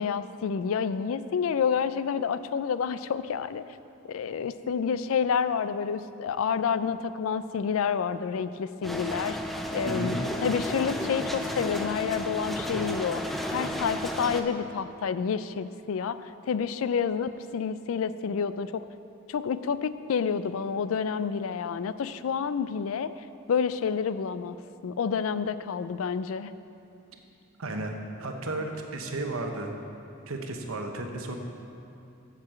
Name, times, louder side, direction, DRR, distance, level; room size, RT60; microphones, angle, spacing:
voice 1, 0.0-3.6 4.1-9.4 9.7-13.2 13.5-18.9 19.3-23.1 23.5-24.6 24.8-26.5, left 6 dB, 75° left, 13 dB, 0.4 m, -29 dB
sound 1, 8.8-14.4, left 1 dB, ahead, 0.5 m, -32 dB
voice 2, 9.8-10.1 27.6-29.7 30.3-31.4, right 2 dB, 80° right, 3 dB, 1.0 m, -33 dB
7.5 x 6.8 x 7.4 m, 2.7 s
head